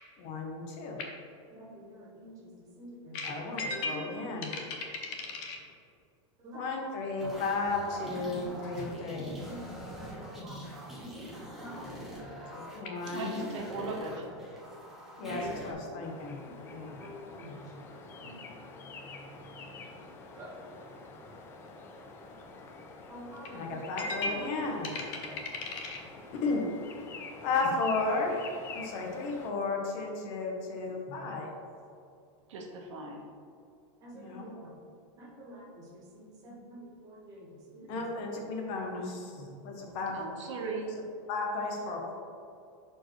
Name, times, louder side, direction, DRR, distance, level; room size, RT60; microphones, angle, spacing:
voice 1, 0.2-1.1 3.1-5.6 6.5-9.4 12.5-13.5 15.2-16.4 16.7-17.0 23.5-26.0 26.3-27.2 27.4-31.6 34.1-34.4 37.9-39.2 39.6-40.2 41.3-42.1, left 3 dB, 35° left, 1 dB, 0.9 m, -34 dB
voice 2, 1.5-3.4 6.4-6.7 8.4-8.6 9.5-10.8 11.0-12.6 15.2-15.6 16.5-17.7 18.2-21.1 23.1-23.8 31.1-31.2 34.0-34.7 35.2-38.1 39.0-39.5, right 1 dB, 20° right, -4 dB, 1.4 m, -49 dB
sound 1, 7.2-15.7, equal, ahead, 1.1 m, -44 dB
voice 3, 13.1-14.3 32.5-33.2 40.1-40.9, right 3 dB, 80° right, 1 dB, 1.3 m, -38 dB
sound 2, 16.0-29.5, left 3 dB, 15° left, 0.4 m, -47 dB
10.5 x 4.5 x 3.2 m, 2.5 s
supercardioid pair, 175°, 16 cm